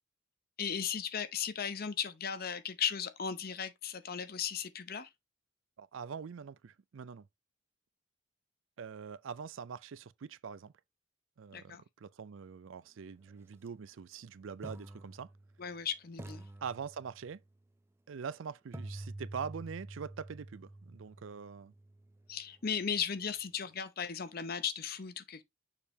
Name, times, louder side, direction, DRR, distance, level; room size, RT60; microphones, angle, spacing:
voice 1, 0.6-5.1 11.5-11.8 15.6-16.5 22.3-25.4, left 7 dB, 50° left, 0.7 m, -36 dB
voice 2, 5.8-7.3 8.8-10.7 11.4-15.3 16.6-17.4 18.1-21.7, right 6 dB, 75° right, 0.4 m, -43 dB
sound 1, 13.5-13.7 14.6-15.8 16.2-17.4 18.7-22.7, right 1 dB, 10° right, 0.4 m, -48 dB
6.6 x 5.1 x 2.8 m
head